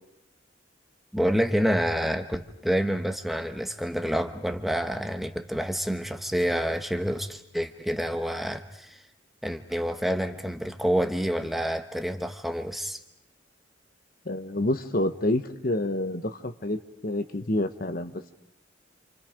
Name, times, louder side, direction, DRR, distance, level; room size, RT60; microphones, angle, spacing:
voice 1, 1.1-9.0 9.4-13.0, equal, ahead, 6 dB, 1.0 m, -28 dB
voice 2, 14.2-18.3, left 1 dB, 50° left, 9 dB, 1.1 m, -28 dB
28.5 x 28.0 x 5.1 m, 0.76 s
head